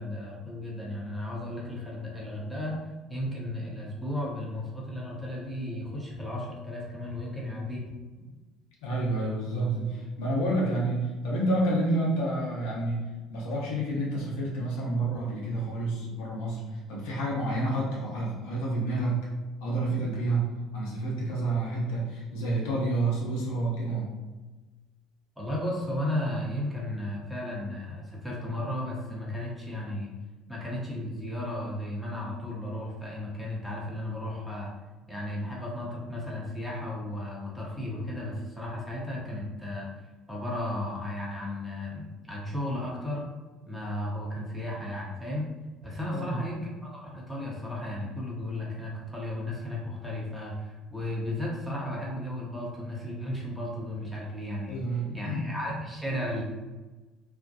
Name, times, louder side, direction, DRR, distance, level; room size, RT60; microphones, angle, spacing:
voice 1, 0.0-2.8 3.1-7.8 25.4-30.1 30.5-34.7 35.1-39.9 40.3-43.2 43.7-45.5 45.8-56.4, left 1 dB, ahead, -5 dB, 0.8 m, -34 dB
voice 2, 8.8-19.2 19.6-20.5 20.7-24.1 46.1-46.4 54.7-55.4, right 2 dB, 70° left, -5 dB, 0.7 m, -29 dB
2.4 x 2.1 x 2.6 m, 1.2 s
figure-of-eight pair, 60°, 0 cm